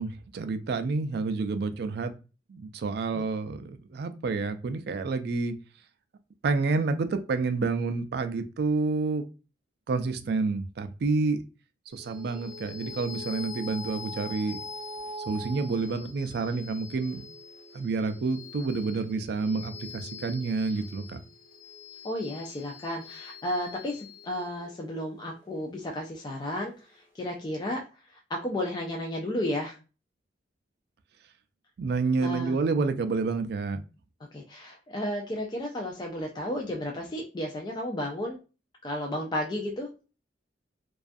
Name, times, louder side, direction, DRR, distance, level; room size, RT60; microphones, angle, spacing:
voice 1, 0.0-2.1 2.5-5.5 6.4-9.2 9.9-11.4 11.9-14.6 15.3-17.2 17.7-21.2 31.8-33.8, right 4 dB, 60° right, 9 dB, 0.3 m, -29 dB
sound 1, 11.9-26.6, left 2 dB, 50° left, 0.8 m, -44 dB
voice 2, 22.0-27.8 28.3-29.8 32.2-32.6 34.3-38.4 38.8-39.9, left 1 dB, 25° left, 1 dB, 0.3 m, -33 dB
2.3 x 2.3 x 2.5 m, 0.32 s
head